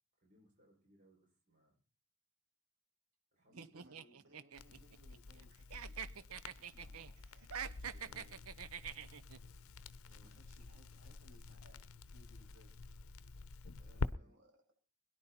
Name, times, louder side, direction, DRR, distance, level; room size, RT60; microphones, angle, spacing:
voice 1, 0.2-1.7 3.3-4.2 10.1-10.3 13.8-14.3, equal, 35° right, -2 dB, 6.5 m, -70 dB
voice 2, 3.5-8.5 10.1-12.7 13.8-14.6, right 1 dB, 55° right, 1 dB, 6.7 m, -66 dB
sound 1, 3.6-5.4 5.7-7.1 7.4-9.4, right 7 dB, 85° right, 0.8 m, -46 dB
Crackle, 4.5-14.1, left 3 dB, 75° left, 0.8 m, -47 dB
21.5 x 10.5 x 4.4 m, 0.34 s
head